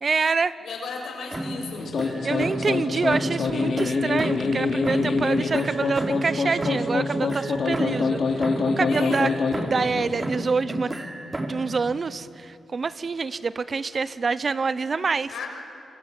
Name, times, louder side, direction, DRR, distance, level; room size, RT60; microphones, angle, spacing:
voice 1, 0.0-0.5 2.2-9.3 9.6-10.9 11.5-15.3, right 4 dB, 45° right, 16 dB, 0.9 m, -26 dB
voice 2, 0.6-1.9 8.9-9.3 15.3-15.5, left 5 dB, 80° left, 1 dB, 6.3 m, -35 dB
sound 1, 1.3-2.8 3.1-4.6 4.8-8.2 8.4-9.9 10.2-11.7, right 1 dB, 25° right, 3.1 m, -31 dB
sound 2, 1.7-10.2, left 4 dB, 65° left, 3.2 m, -25 dB
27.0 x 24.0 x 9.2 m, 2.6 s
cardioid pair, 75°, 0 cm